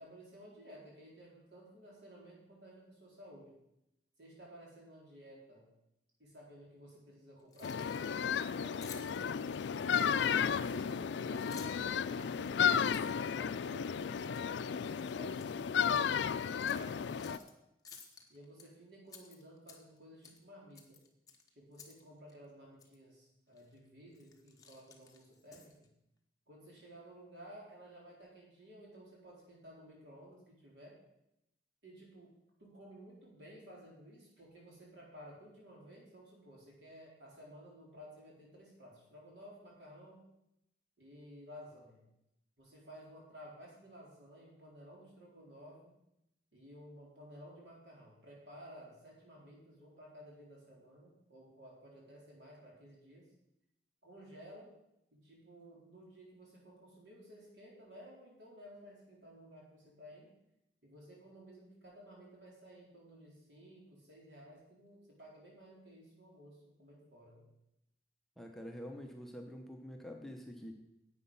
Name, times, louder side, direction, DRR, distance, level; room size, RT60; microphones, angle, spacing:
voice 1, 0.0-3.5 4.2-5.7 6.2-9.1 10.4-14.9 15.1-17.5 18.3-21.0 21.6-25.9 26.5-31.0 31.8-32.3 32.6-40.3 41.0-42.1 42.6-45.9 46.5-53.3 54.0-54.7 55.2-60.3 60.8-67.5, equal, 70° right, -3 dB, 4.0 m, -55 dB
Keys jangling, 7.4-8.1 8.8-10.4 11.2-11.9 12.3-13.9 14.3-14.5 14.9-15.5 15.9-16.0 16.6-17.5 17.8-18.7 19.1-20.0 20.2-20.4 20.7-22.0 22.3-22.4 22.8-23.0 23.6-23.8 24.1-25.9, left 5 dB, 20° left, 1.2 m, -55 dB
sound 1, 7.6-17.4, left 7 dB, 75° left, 0.4 m, -33 dB
voice 2, 68.4-70.7, equal, ahead, 2 dB, 0.9 m, -46 dB
10.0 x 8.4 x 5.5 m, 0.84 s
head